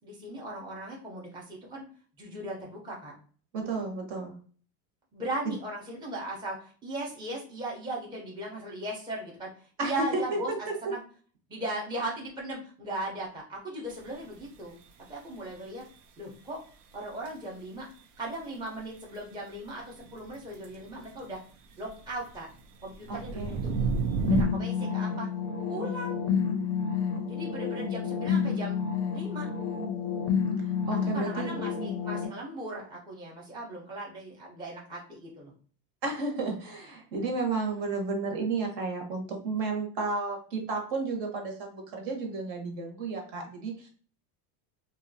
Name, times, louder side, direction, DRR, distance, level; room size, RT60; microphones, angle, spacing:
voice 1, 0.0-1.8 2.2-3.1 5.1-10.5 10.9-11.0 11.5-14.8 15.1-15.8 16.2-16.6 16.9-17.9 18.2-21.4 21.8-22.5 22.8-23.4 24.3-25.3 25.7-26.1 27.3-28.8 29.1-29.5 31.0-35.5, right 1 dB, 10° right, -3 dB, 0.6 m, -38 dB
voice 2, 3.5-4.3 5.4-5.6 9.8-10.2 23.1-23.6 30.9-31.5 36.0-43.9, right 3 dB, 60° right, 2 dB, 1.1 m, -32 dB
sound 1, 13.9-14.0 17.3-17.4 20.1-21.1 21.9-22.3 22.6-24.4, right 5 dB, 85° right, 0.7 m, -30 dB
sound 2, 24.3-32.3, left 6 dB, 35° left, 0.4 m, -30 dB
2.7 x 2.3 x 2.6 m, 0.43 s
cardioid pair, 135°, 48 cm